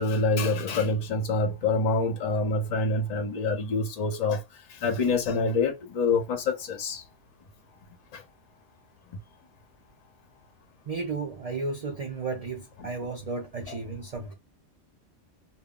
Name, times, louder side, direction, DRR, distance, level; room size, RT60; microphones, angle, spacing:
voice 1, 0.0-4.4 4.8-7.0 8.1-8.2 13.7-13.8, left 3 dB, 45° left, 0.5 m, -26 dB
voice 2, 10.9-14.3, right 3 dB, 65° right, 0.3 m, -33 dB
2.0 x 2.0 x 3.6 m
omnidirectional pair, 1.2 m